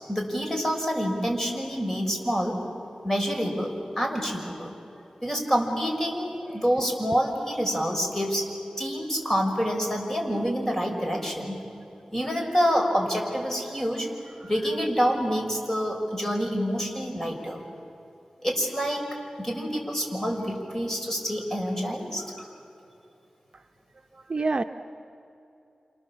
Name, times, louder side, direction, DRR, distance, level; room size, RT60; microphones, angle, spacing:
voice 1, 0.0-2.6 3.0-4.8 5.2-8.5 8.8-11.6 12.1-14.1 14.4-17.6 18.4-19.1 19.4-22.5, equal, 20° left, 1 dB, 6.1 m, -27 dB
voice 2, 24.1-24.6, right 3 dB, 50° right, 7 dB, 0.8 m, -27 dB
29.0 x 27.0 x 7.5 m, 2.8 s
wide cardioid pair, 60°, 2 cm